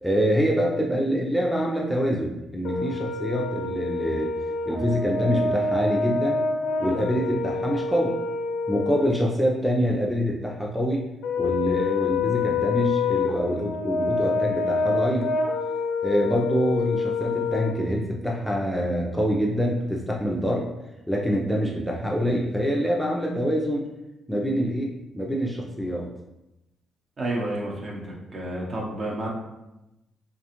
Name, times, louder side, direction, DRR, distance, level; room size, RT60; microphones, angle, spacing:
voice 1, 0.0-4.3 4.6-6.4 6.8-8.1 8.7-11.0 11.4-15.3 16.0-20.6 21.1-23.8 24.3-26.1, equal, ahead, -3 dB, 0.4 m, -25 dB
Brass instrument, 2.6-9.1 11.2-17.8, left 4 dB, 85° left, 0.4 m, -27 dB
voice 2, 27.2-29.3, right 1 dB, 45° right, -2 dB, 0.7 m, -30 dB
2.4 x 2.3 x 2.8 m, 0.93 s
cardioid pair, 90°, 0 cm